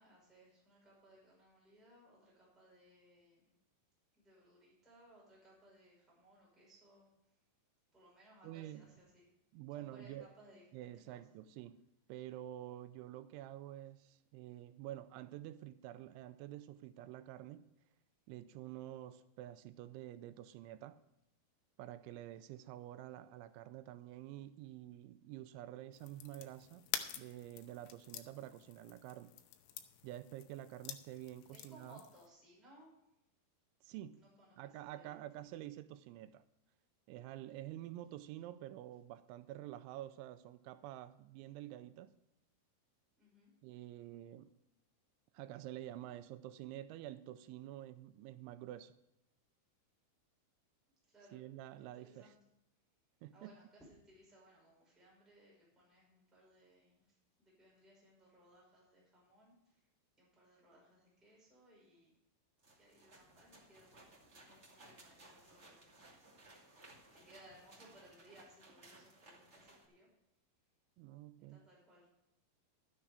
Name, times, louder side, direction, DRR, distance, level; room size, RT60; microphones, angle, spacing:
voice 1, 0.0-3.5 4.1-7.1 7.9-9.3 9.8-10.6 11.1-11.2 31.5-32.9 34.1-35.2 43.2-43.5 51.1-51.4 51.8-52.4 53.3-57.1 57.4-59.8 60.2-62.1 62.8-64.2 64.5-66.8 67.0-70.1 71.4-72.1, right 1 dB, ahead, 5.0 m, -64 dB
voice 2, 8.4-8.9 9.5-10.3 10.7-11.8 12.1-17.7 18.3-21.0 21.8-26.9 27.1-29.3 30.0-32.0 33.8-34.2 34.6-36.5 37.1-42.1 43.6-44.5 45.3-49.0 51.3-52.3 53.2-53.6 71.0-71.7, right 13 dB, 85° right, 2.9 m, -49 dB
sound 1, 25.9-32.3, left 11 dB, 85° left, 3.2 m, -48 dB
sound 2, 62.6-69.9, right 2 dB, 65° right, 0.6 m, -61 dB
12.5 x 9.8 x 4.9 m
omnidirectional pair, 5.3 m